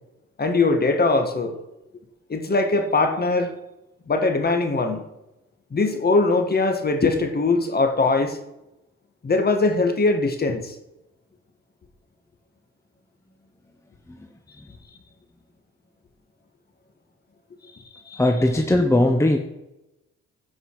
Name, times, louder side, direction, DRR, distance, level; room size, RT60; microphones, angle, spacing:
voice 1, 0.4-1.6 2.3-3.5 4.1-5.0 5.7-8.4 9.2-10.7 18.1-18.2, left 3 dB, 30° left, 6 dB, 1.6 m, -21 dB
voice 2, 18.2-19.4, left 1 dB, 10° left, 5 dB, 0.9 m, -18 dB
15.5 x 5.5 x 4.8 m, 0.95 s
cardioid pair, 90°, 30 cm